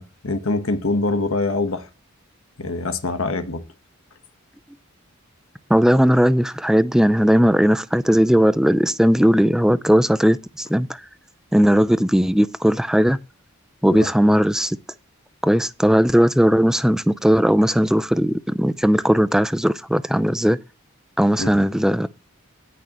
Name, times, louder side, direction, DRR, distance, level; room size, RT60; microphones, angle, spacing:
voice 1, 0.0-1.9 2.6-3.6 13.9-14.1 21.4-21.5, left 2 dB, 70° left, 1.3 m, -24 dB
voice 2, 5.7-11.0 11.5-13.2 13.8-14.8 15.4-20.6 21.2-22.1, equal, 5° right, 0.4 m, -17 dB
17.5 x 6.4 x 3.0 m
head